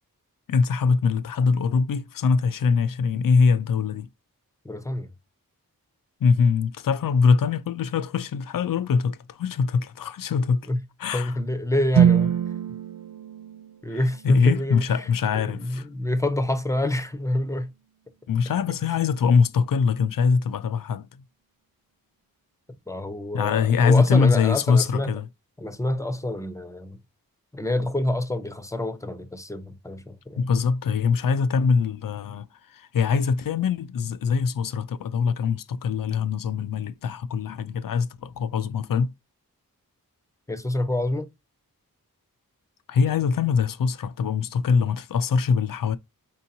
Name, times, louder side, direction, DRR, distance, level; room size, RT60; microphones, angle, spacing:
voice 1, 0.5-4.1 6.2-10.7 11.0-11.3 13.9-15.9 18.3-21.1 23.3-25.3 30.4-39.1 42.9-46.0, left 5 dB, 65° left, 0.5 m, -23 dB
voice 2, 4.6-5.1 10.7-10.8 11.1-12.3 13.8-15.1 15.3-17.7 22.9-25.2 25.6-27.0 27.5-30.4 40.5-41.3, left 1 dB, 10° left, 0.7 m, -27 dB
sound 1, 11.9-16.0, right 9 dB, 70° right, 0.5 m, -25 dB
4.4 x 2.8 x 2.6 m
wide cardioid pair, 55°, 36 cm